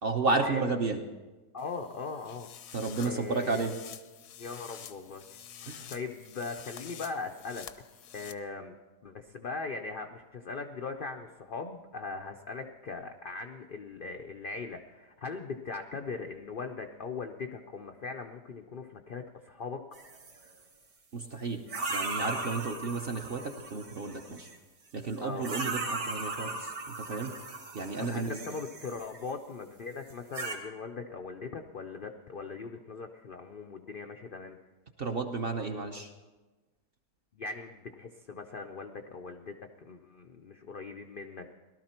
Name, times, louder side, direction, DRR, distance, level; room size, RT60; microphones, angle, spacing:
voice 1, 0.0-1.0 2.7-3.7 5.7-5.9 21.1-21.6 21.9-24.5 24.9-27.3 27.7-28.4 35.0-36.1, right 3 dB, 50° right, 4 dB, 0.7 m, -32 dB
voice 2, 1.5-2.5 3.0-3.6 4.4-5.4 5.9-7.7 8.1-8.7 9.0-19.8 25.2-25.5 28.0-34.6 37.3-41.5, left 4 dB, 80° left, 4 dB, 0.4 m, -40 dB
sound 1, 1.6-8.3, left 9 dB, 65° left, 0.8 m, -48 dB
sound 2, 19.9-20.5 21.7-24.6 25.4-29.3 30.1-30.6, right 3 dB, 75° right, 2.3 m, -38 dB
18.0 x 12.5 x 4.4 m, 1.2 s
omnidirectional pair, 1.8 m